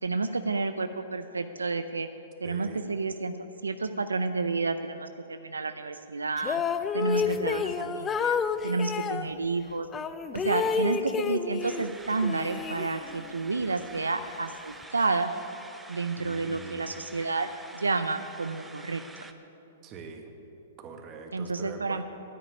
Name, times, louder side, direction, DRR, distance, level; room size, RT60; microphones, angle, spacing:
voice 1, 0.0-2.1 2.4-3.3 3.6-6.6 6.9-8.4 8.6-9.9 10.3-15.3 15.9-19.0 21.3-22.0, right 3 dB, 90° right, 9 dB, 0.5 m, -30 dB
voice 2, 2.4-2.8 7.2-7.8 10.4-10.8 13.5-13.9 16.2-16.9 19.8-20.3 20.8-22.0, right 5 dB, 30° right, 4 dB, 1.7 m, -44 dB
sound 1, 6.4-9.3 9.9-11.9 12.2-13.3, left 6 dB, 20° left, 0.6 m, -30 dB
sound 2, 11.6-19.3, right 2 dB, 10° right, 0.8 m, -48 dB
10.5 x 9.6 x 9.9 m, 2.9 s
hypercardioid pair, 115°, 0 cm